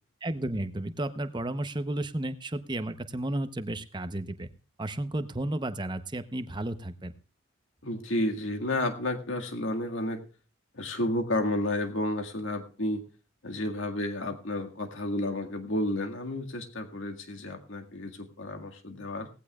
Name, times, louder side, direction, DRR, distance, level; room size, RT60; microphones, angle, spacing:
voice 1, 0.2-4.5 4.8-7.1, right 1 dB, 20° right, 11 dB, 0.8 m, -33 dB
voice 2, 7.8-10.2 10.7-13.0 13.4-19.3, left 1 dB, 70° left, 4 dB, 1.9 m, -31 dB
18.0 x 15.0 x 2.4 m, 0.35 s
head